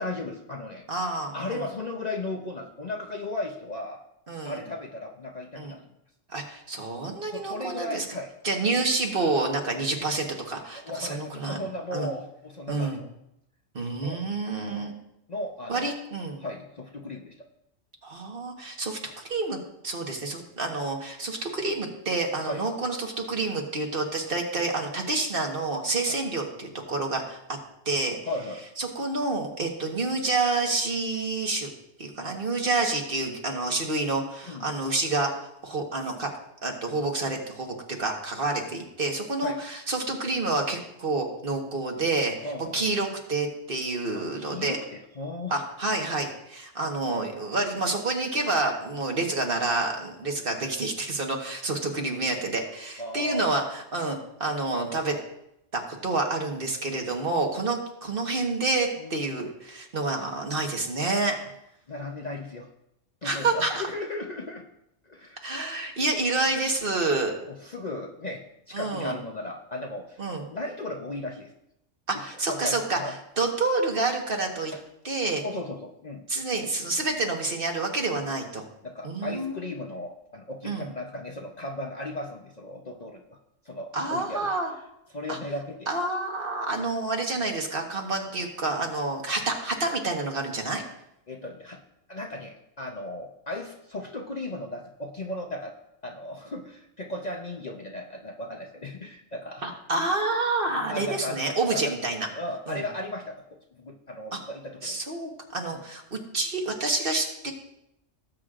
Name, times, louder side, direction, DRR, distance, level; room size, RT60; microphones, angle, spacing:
voice 1, 0.0-0.8 1.3-4.0 4.4-5.8 7.3-8.3 10.7-13.1 14.0-14.2 15.3-15.9 16.4-17.3 22.5-22.6 28.3-28.6 34.4-34.7 39.4-39.6 42.4-42.8 44.4-45.6 49.1-49.3 53.0-53.6 59.0-59.5 61.9-62.7 63.2-64.7 65.1-65.4 67.5-70.2 70.5-71.5 72.4-73.1 74.7-74.8 75.4-76.3 78.2-78.3 78.8-83.4 83.6-84.5 85.1-85.9 91.3-91.8 92.1-95.7 96.0-99.7 100.9-101.9 102.3-105.0 105.7-105.8, left 2 dB, 40° left, 1 dB, 0.8 m, -36 dB
voice 2, 0.9-1.6 4.3-4.6 5.6-5.8 6.3-8.0 8.4-11.6 11.9-12.1 12.7-13.0 13.7-14.9 15.7-16.4 18.0-27.4 27.8-28.2 28.8-31.7 32.0-36.3 36.6-42.3 42.7-44.8 45.5-55.2 55.7-61.4 63.2-63.7 65.4-67.3 68.7-69.2 70.2-70.5 72.1-73.0 73.4-74.7 75.0-75.4 76.3-78.6 79.0-79.7 80.6-80.9 83.9-84.7 85.3-85.4 85.9-90.8 99.6-102.3 102.7-102.8 104.3-104.4 104.8-107.5, right 3 dB, 45° right, 2 dB, 1.5 m, -28 dB
18.5 x 8.1 x 2.5 m, 0.82 s
omnidirectional pair, 1.3 m